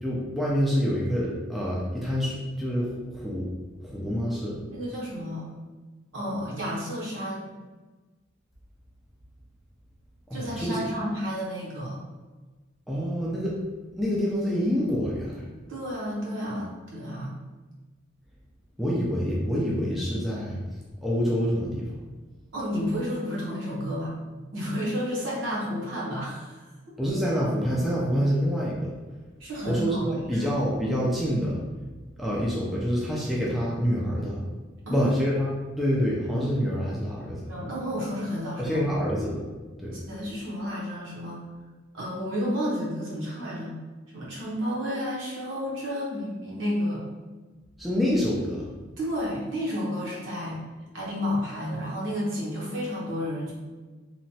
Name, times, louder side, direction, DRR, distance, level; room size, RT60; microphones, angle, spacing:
voice 1, 0.0-3.5 3.8-4.6 10.3-10.9 12.9-13.6 13.9-15.4 18.8-20.6 21.0-22.0 27.0-28.9 29.6-31.6 32.2-34.4 34.9-37.5 38.6-39.5 39.8-40.1 47.8-48.7, equal, ahead, -6 dB, 0.3 m, -27 dB
voice 2, 4.7-5.5 6.1-7.5 10.3-12.0 15.7-17.3 22.5-26.7 29.4-30.5 34.9-35.1 37.5-38.8 39.9-41.4 41.9-43.8 44.1-47.0 49.0-50.6 50.9-53.5, equal, 65° right, -5 dB, 0.9 m, -31 dB
3.0 x 2.2 x 2.7 m, 1.3 s
head